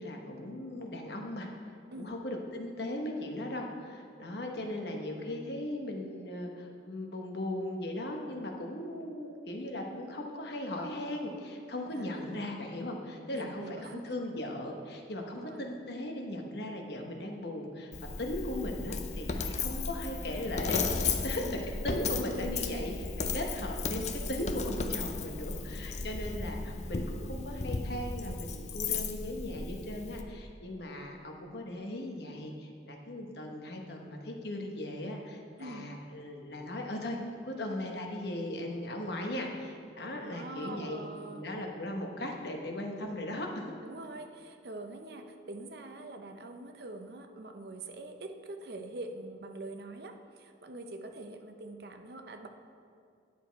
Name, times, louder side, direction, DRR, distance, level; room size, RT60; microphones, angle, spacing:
voice 1, 0.0-1.5 2.0-37.2 37.5-41.0 41.3-43.7, left 1 dB, 60° left, 2 dB, 1.1 m, -38 dB
voice 2, 11.9-12.5 13.3-14.2 15.2-15.7 21.4-21.7 22.3-23.1 35.6-35.9 40.1-41.5 43.8-52.5, right 2 dB, 55° right, 5 dB, 0.7 m, -44 dB
Coin (dropping), 17.9-30.2, left 4 dB, 35° left, 0.5 m, -35 dB
10.5 x 6.8 x 4.6 m, 2.4 s
head